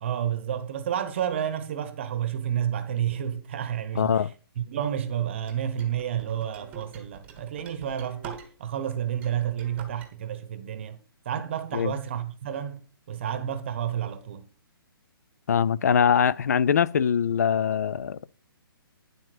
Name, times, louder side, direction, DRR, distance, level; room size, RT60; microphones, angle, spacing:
voice 1, 0.0-4.1 4.6-11.0 11.2-12.8 13.1-14.4, right 9 dB, 30° right, 1.0 m, -30 dB
voice 2, 3.9-4.3 11.7-11.9 15.5-18.3, left 7 dB, 45° left, 0.4 m, -23 dB
sound 1, 5.4-8.8 9.1-10.1, right 5 dB, 10° right, 1.1 m, -46 dB
10.0 x 7.7 x 5.0 m
hypercardioid pair, 170°, 13 cm